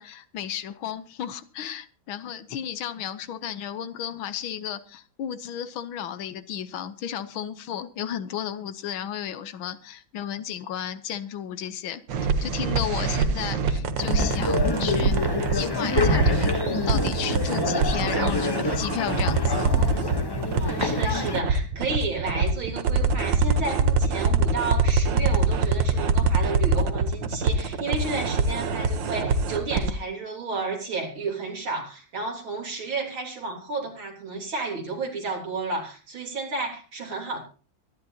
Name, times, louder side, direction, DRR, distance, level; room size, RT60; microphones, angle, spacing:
voice 1, 0.0-12.0 12.4-15.2 15.5-19.7, left 9 dB, 85° left, 1.7 m, -33 dB
sound 1, 12.1-29.9, right 4 dB, 70° right, 1.7 m, -24 dB
sound 2, 14.0-21.4, left 3 dB, 30° left, 0.4 m, -27 dB
voice 2, 20.6-37.4, right 3 dB, 90° right, 4.4 m, -32 dB
24.0 x 10.5 x 2.8 m
omnidirectional pair, 2.2 m